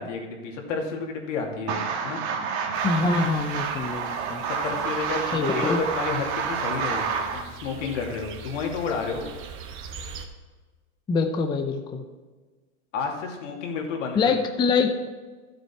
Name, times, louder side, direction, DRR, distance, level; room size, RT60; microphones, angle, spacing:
voice 1, 0.0-1.8 2.0-2.2 4.4-9.3 12.9-14.3, left 5 dB, 75° left, 1 dB, 2.6 m, -31 dB
sound 1, 1.7-7.4, right 6 dB, 55° right, 1.7 m, -29 dB
sound 2, 2.7-10.3, right 4 dB, 35° right, 1.2 m, -43 dB
voice 2, 2.8-4.4 5.3-5.8 11.1-12.0 14.1-14.9, left 4 dB, 10° left, 5 dB, 0.6 m, -24 dB
12.5 x 8.0 x 4.5 m, 1.4 s
supercardioid pair, 140°, 37 cm